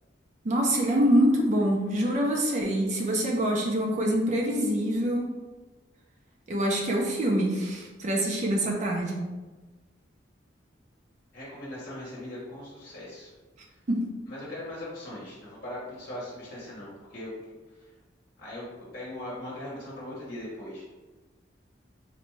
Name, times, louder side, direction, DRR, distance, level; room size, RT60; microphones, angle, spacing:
voice 1, 0.4-5.4 6.5-9.2 13.9-14.1, equal, 40° right, 0 dB, 0.4 m, -25 dB
voice 2, 11.3-13.3 13.7-13.8 14.3-17.3 17.7-17.9 18.4-18.7 18.9-20.9, left 1 dB, 55° left, -6 dB, 0.8 m, -40 dB
3.9 x 2.2 x 3.0 m, 1.2 s
head